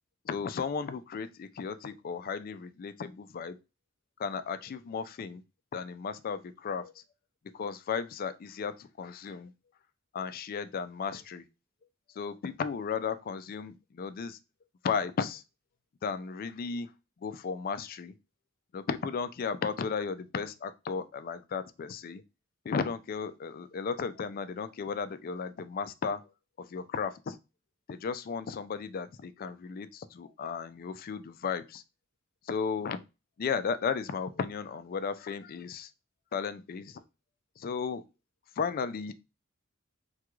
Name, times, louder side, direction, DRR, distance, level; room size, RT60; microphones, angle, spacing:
voice 1, 0.2-3.6 4.2-5.4 5.7-7.0 7.5-9.5 10.1-11.4 12.2-14.4 14.8-15.4 16.0-16.9 17.2-18.1 18.7-22.2 22.6-26.2 26.6-27.4 27.9-31.8 32.4-33.0 33.4-35.9 36.3-37.0 37.6-38.0 38.6-39.1, left 6 dB, 45° left, 0.3 m, -35 dB
3.4 x 2.3 x 3.0 m
head